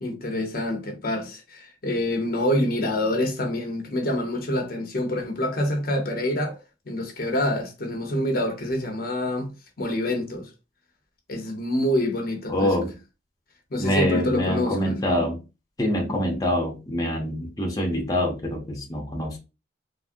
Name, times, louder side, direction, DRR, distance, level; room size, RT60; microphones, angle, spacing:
voice 1, 0.0-9.5 9.8-10.5 11.3-12.7 13.7-15.0, left 1 dB, 55° left, 0.7 m, -26 dB
voice 2, 12.5-12.9 13.8-15.4 15.8-19.4, equal, 20° left, 0.7 m, -25 dB
3.5 x 2.0 x 2.5 m
head